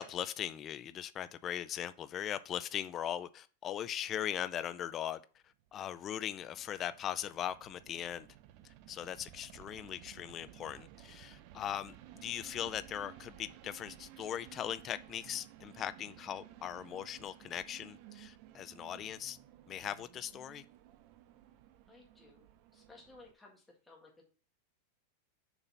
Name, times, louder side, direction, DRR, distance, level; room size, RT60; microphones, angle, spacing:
voice 1, 0.0-5.2 5.7-8.3 8.6-19.4 19.7-20.6, left 10 dB, 20° left, 0.4 m, -39 dB
sound 1, 5.7-23.3, right 12 dB, 40° right, 0.6 m, -56 dB
voice 2, 21.9-22.5 22.7-24.2, left 3 dB, 5° left, 1.8 m, -58 dB
7.0 x 4.1 x 5.5 m
supercardioid pair, 165°, 0 cm